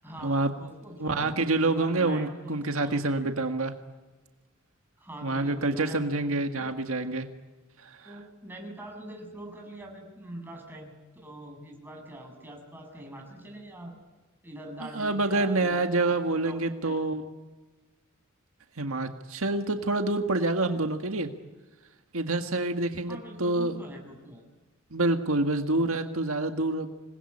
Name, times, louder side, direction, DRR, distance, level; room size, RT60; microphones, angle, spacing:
voice 1, 0.0-1.3 1.6-3.3 5.0-6.7 8.0-13.9 14.4-15.8 16.1-17.0 23.1-24.4, right 1 dB, 10° right, 1 dB, 7.5 m, -44 dB
voice 2, 1.0-3.7 5.2-7.3 7.8-8.1 14.9-17.2 18.8-21.3 22.1-23.8 24.9-26.9, right 2 dB, 80° right, 6 dB, 1.8 m, -27 dB
27.5 x 21.0 x 9.9 m, 1.2 s
head